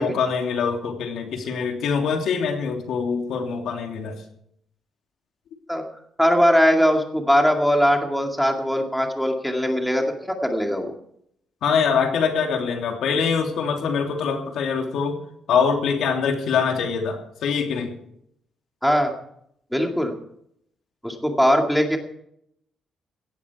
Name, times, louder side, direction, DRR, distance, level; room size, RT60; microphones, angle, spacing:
voice 1, 0.0-4.1 11.6-15.2 15.5-17.9, left 6 dB, 75° left, 3 dB, 3.0 m, -24 dB
voice 2, 6.2-10.9 18.8-19.2 19.7-20.1 21.0-22.0, equal, ahead, 3 dB, 2.2 m, -20 dB
17.0 x 14.0 x 4.7 m, 0.71 s
cardioid pair, 155°, 0 cm